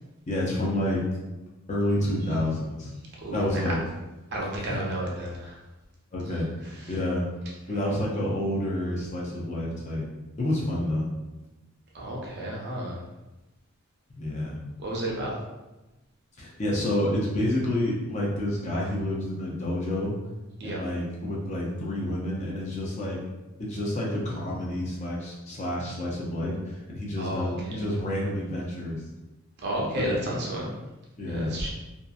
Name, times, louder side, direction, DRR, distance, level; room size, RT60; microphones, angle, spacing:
voice 1, 0.3-1.0 1.7-2.9 3.3-3.8 4.7-4.8 6.1-6.5 6.9-7.3 7.7-10.1 10.4-11.1 14.2-14.6 16.4-20.1 20.6-23.2 23.6-29.0 30.0-30.1 31.2-31.5, left 1 dB, 30° left, -4 dB, 0.5 m, -29 dB
voice 2, 3.2-3.6 4.3-5.6 6.8-6.9 7.7-7.9 11.9-13.0 14.8-15.4 20.6-20.8 27.2-27.8 29.6-30.7 31.3-31.7, right 1 dB, 50° right, -3 dB, 0.6 m, -32 dB
2.7 x 2.4 x 2.3 m, 1.1 s
head